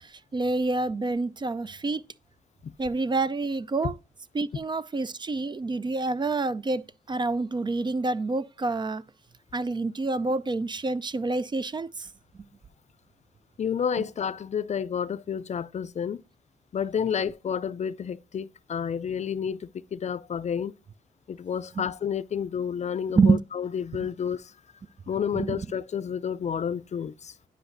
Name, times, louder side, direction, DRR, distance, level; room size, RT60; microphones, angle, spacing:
voice 1, 0.3-2.0 2.8-3.9 4.3-6.8 7.1-9.0 9.5-11.9 23.2-23.4 25.4-25.6, right 3 dB, 30° right, 0.4 m, -27 dB
voice 2, 13.6-16.2 16.7-20.7 21.3-24.5 25.1-27.3, left 7 dB, 50° left, 0.4 m, -30 dB
9.7 x 5.5 x 2.6 m
cardioid pair, 80°, 15 cm